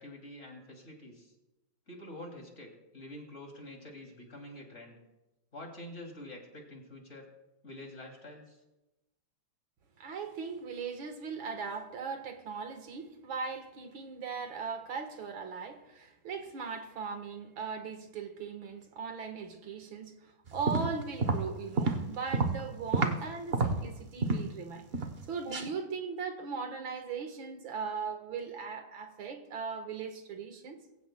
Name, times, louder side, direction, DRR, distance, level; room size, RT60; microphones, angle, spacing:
voice 1, 0.0-1.3 1.9-5.0 5.5-7.3 7.6-8.6, left 1 dB, 35° left, 1 dB, 2.9 m, -47 dB
voice 2, 10.0-24.9 25.3-30.8, right 5 dB, 75° right, 6 dB, 2.2 m, -39 dB
sound 1, 20.5-23.2 23.5-24.6 24.9-25.2 25.5-25.7, right 3 dB, 45° right, 0.8 m, -30 dB
22.0 x 16.0 x 2.2 m, 0.98 s
omnidirectional pair, 2.2 m